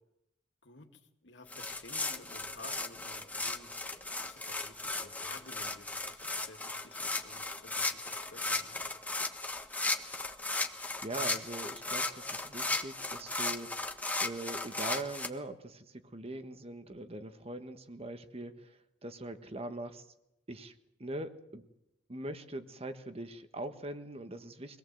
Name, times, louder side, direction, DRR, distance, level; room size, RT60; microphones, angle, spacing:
voice 1, 0.6-3.7 4.2-8.9, left 3 dB, 90° left, 5 dB, 2.5 m, -53 dB
sound 1, 1.5-15.3, left 2 dB, 10° left, 1.4 m, -36 dB
voice 2, 10.7-13.9 14.2-20.1 20.5-20.7 21.0-21.6 22.1-24.8, right 1 dB, 35° right, 9 dB, 1.4 m, -42 dB
24.5 x 18.0 x 7.9 m, 0.88 s
head